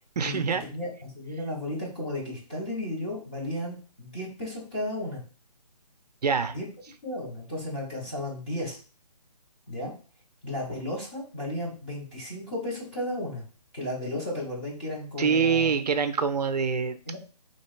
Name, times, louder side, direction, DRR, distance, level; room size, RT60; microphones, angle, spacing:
voice 1, 0.2-0.6 6.2-6.5 15.2-17.0, right 6 dB, 75° right, 10 dB, 0.6 m, -25 dB
voice 2, 1.1-5.2 6.5-6.7 7.0-8.8 9.7-9.9 10.4-13.4 13.7-15.7 17.1-17.2, left 1 dB, 10° left, -6 dB, 0.7 m, -34 dB
3.0 x 2.8 x 4.5 m, 0.37 s
hypercardioid pair, 175°, 21 cm